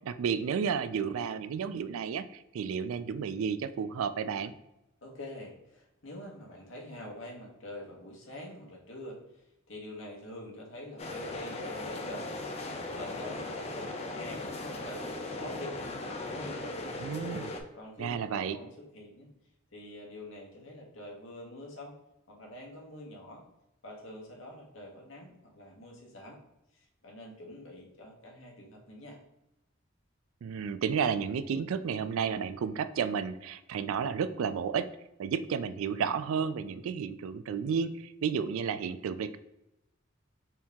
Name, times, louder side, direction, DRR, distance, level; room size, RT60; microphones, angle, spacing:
voice 1, 0.0-4.5 17.0-17.5 18.0-18.6 30.4-34.9 35.2-39.4, right 6 dB, 80° right, 13 dB, 0.3 m, -32 dB
voice 2, 5.0-12.3 12.9-14.4 14.8-17.0 17.7-19.3 19.7-21.9 22.3-23.4 23.8-26.4 26.7-29.2, left 1 dB, 65° left, -1 dB, 1.2 m, -46 dB
sound 1, 11.0-17.6, left 2 dB, 30° left, 0.4 m, -38 dB
4.4 x 2.8 x 3.5 m, 0.90 s
head